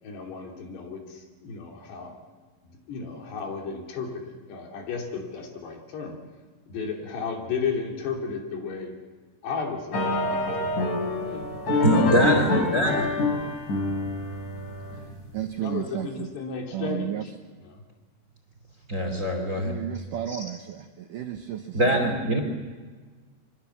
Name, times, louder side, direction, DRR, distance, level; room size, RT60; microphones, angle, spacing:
voice 1, 0.0-2.2 2.6-6.2 6.7-8.9 9.4-11.5 11.9-12.8 15.6-17.3 17.6-17.8, left 5 dB, 70° left, 1 dB, 5.1 m, -34 dB
sound 1, 9.9-15.2, left 2 dB, 45° left, 5.5 m, -26 dB
voice 2, 11.8-13.0 18.9-19.9 20.3-20.5 21.7-22.4, right 1 dB, 20° right, 5 dB, 2.4 m, -23 dB
voice 3, 15.3-16.3 16.7-17.2 19.6-21.8, right 11 dB, 75° right, 5 dB, 2.0 m, -32 dB
26.0 x 25.0 x 7.2 m, 1.4 s
omnidirectional pair, 5.0 m